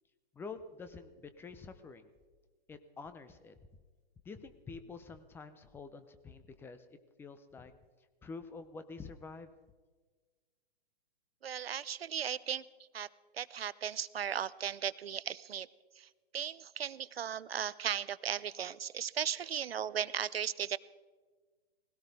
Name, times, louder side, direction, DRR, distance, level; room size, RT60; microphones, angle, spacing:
voice 1, 0.3-2.1 2.7-3.5 4.3-7.7 8.2-9.5, left 4 dB, 10° left, 11 dB, 0.6 m, -48 dB
voice 2, 11.4-12.6 12.9-13.1 13.3-15.7 16.0-20.8, right 8 dB, 85° right, 19 dB, 0.7 m, -36 dB
19.5 x 17.0 x 4.1 m, 1.4 s
hypercardioid pair, 130°, 29 cm